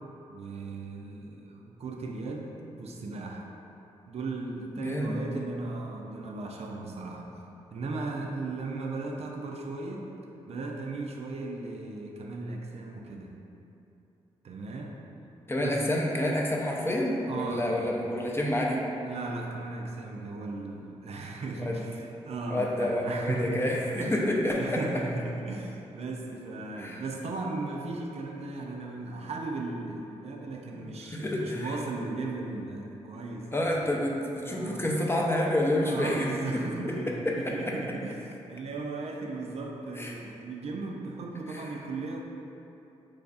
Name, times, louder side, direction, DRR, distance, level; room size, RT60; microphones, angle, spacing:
voice 1, 0.3-3.5 4.1-7.4 7.7-10.1 10.5-13.4 14.4-14.9 15.6-16.1 17.3-17.9 19.0-33.8 34.5-34.9 35.8-42.2, right 3 dB, 55° right, 0 dB, 0.4 m, -36 dB
voice 2, 4.8-5.2 15.5-18.8 21.6-21.8 22.5-24.8 26.8-27.0 30.7-31.8 33.5-36.3 37.3-37.6 40.0-40.1 41.5-41.7, left 1 dB, 20° left, -2 dB, 0.6 m, -28 dB
3.2 x 2.3 x 3.9 m, 2.9 s
supercardioid pair, 45°, 13 cm